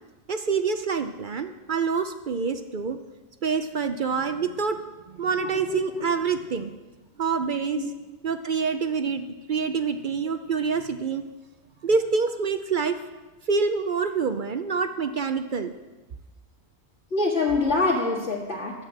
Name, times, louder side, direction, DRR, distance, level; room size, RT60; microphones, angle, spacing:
voice 1, 0.3-3.0 3.4-4.8 5.1-6.7 7.2-7.8 8.2-11.2 11.8-13.0 13.5-15.7, right 5 dB, 55° right, 9 dB, 0.6 m, -26 dB
voice 2, 5.4-6.0 7.7-7.9 17.1-18.7, left 3 dB, 55° left, -3 dB, 2.0 m, -25 dB
10.5 x 7.5 x 8.0 m, 1.2 s
omnidirectional pair, 1.4 m